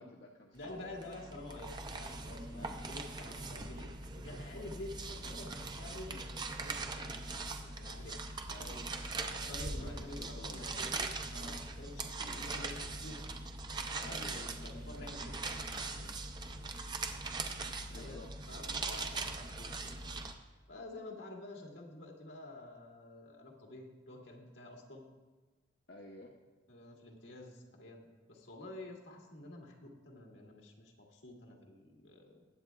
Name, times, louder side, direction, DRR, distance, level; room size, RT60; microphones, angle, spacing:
voice 1, 0.0-1.0 2.5-2.8 8.5-11.0 14.0-14.5 17.9-18.7 25.9-26.3, left 2 dB, 60° left, -1 dB, 0.8 m, -53 dB
voice 2, 0.5-8.1 9.3-13.2 13.9-16.1 16.4-16.7 17.9-18.2 18.5-20.0 20.7-25.1 26.7-32.4, left 2 dB, 80° left, 0 dB, 1.7 m, -49 dB
sound 1, 0.6-20.3, right 3 dB, 25° right, 0.5 m, -41 dB
20.0 x 8.3 x 2.3 m, 1.3 s
head